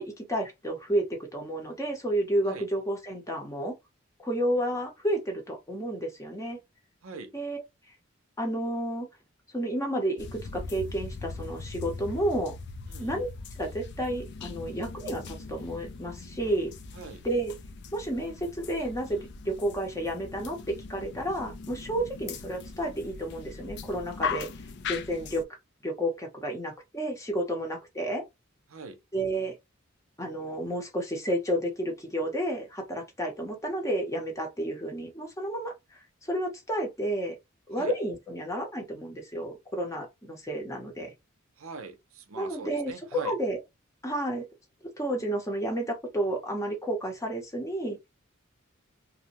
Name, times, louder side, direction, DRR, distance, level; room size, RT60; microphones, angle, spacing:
voice 1, 0.0-3.8 4.2-6.6 7.3-7.6 8.4-9.1 9.5-12.6 13.0-13.3 13.6-16.7 17.2-17.6 17.9-24.5 24.9-25.5 25.8-28.2 29.1-29.6 30.2-37.4 37.7-41.1 42.4-43.6 44.0-44.4 45.0-48.0, right 1 dB, 15° left, 0.7 m, -31 dB
voice 2, 7.0-7.3 12.9-13.2 16.9-17.2 28.7-29.0 37.8-37.9 41.6-43.3, right 4 dB, 80° right, 0.6 m, -42 dB
sound 1, 10.2-25.4, left 5 dB, 55° left, 0.4 m, -40 dB
2.5 x 2.1 x 2.8 m
head